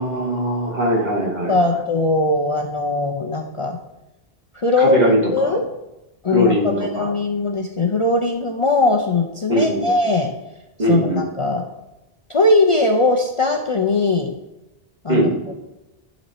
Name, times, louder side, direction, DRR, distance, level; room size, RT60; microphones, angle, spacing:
voice 1, 0.0-1.8 4.8-5.6 6.3-7.1 9.5-9.9 10.8-11.2 15.1-15.3, equal, 45° right, -2 dB, 2.1 m, -20 dB
voice 2, 1.5-3.8 4.5-5.0 5.3-5.6 6.2-10.3 10.9-11.6 12.3-14.3 15.0-15.3, left 2 dB, 35° left, 2 dB, 0.6 m, -19 dB
11.0 x 4.1 x 4.3 m, 0.94 s
omnidirectional pair, 1.0 m